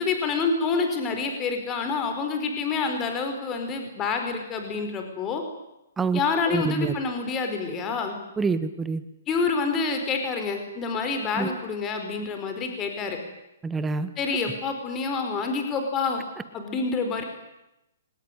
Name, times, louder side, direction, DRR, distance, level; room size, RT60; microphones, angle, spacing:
voice 1, 0.0-5.4 6.1-8.2 9.3-13.2 14.2-16.2 16.5-17.2, left 4 dB, 20° left, 5 dB, 4.7 m, -27 dB
voice 2, 6.5-6.9 8.4-9.0 11.4-11.5 13.6-14.1, right 4 dB, 10° right, 12 dB, 1.3 m, -26 dB
24.0 x 20.0 x 10.0 m, 0.90 s
hypercardioid pair, 145°, 0 cm